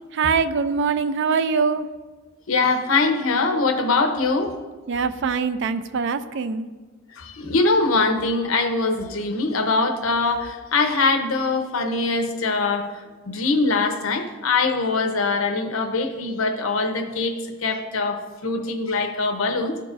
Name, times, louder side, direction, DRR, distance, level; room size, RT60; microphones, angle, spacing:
voice 1, 0.1-1.9 4.9-6.7, right 5 dB, 60° right, 12 dB, 0.4 m, -23 dB
voice 2, 2.5-4.5 7.1-12.9 13.3-19.7, left 3 dB, 80° left, 5 dB, 0.8 m, -22 dB
13.0 x 4.6 x 2.5 m, 1.4 s
head